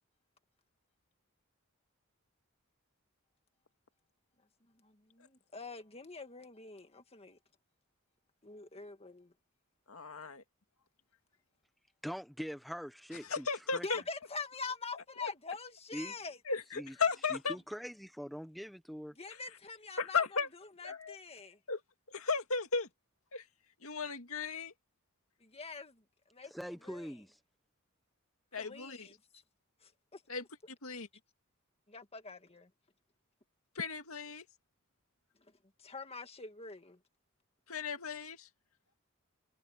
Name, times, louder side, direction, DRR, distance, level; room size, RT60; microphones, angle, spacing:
voice 1, 4.8-7.4 8.4-9.3 13.8-16.4 19.2-20.4 20.8-21.6 25.4-26.0 26.3-26.5 26.8-27.1 28.6-29.4 29.8-30.2 31.9-32.7 35.8-37.0, left 4 dB, 30° left, 1.9 m, -45 dB
voice 2, 9.9-10.4 13.2-14.0 15.2-15.3 16.5-17.6 19.3-19.4 20.0-20.5 20.8-21.2 21.7-21.8 22.1-22.9 23.3-23.4 23.8-24.7 28.5-29.1 30.3-30.4 30.8-31.1 33.8-34.4 37.7-38.5, left 5 dB, 80° left, 2.3 m, -35 dB
voice 3, 12.0-13.5 13.7-13.9 15.9-16.1 16.7-17.0 17.3-19.1 26.5-27.4, equal, ahead, 1.0 m, -43 dB
head